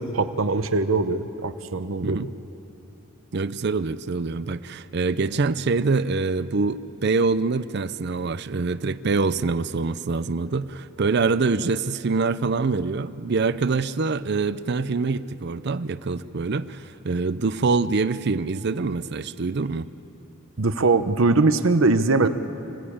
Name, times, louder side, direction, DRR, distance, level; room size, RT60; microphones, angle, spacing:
voice 1, 0.0-2.2 20.6-22.3, right 3 dB, 85° right, 10 dB, 0.9 m, -21 dB
voice 2, 3.3-19.9 22.2-22.3, right 4 dB, 55° right, 14 dB, 0.5 m, -25 dB
25.5 x 16.5 x 8.6 m, 2.9 s
head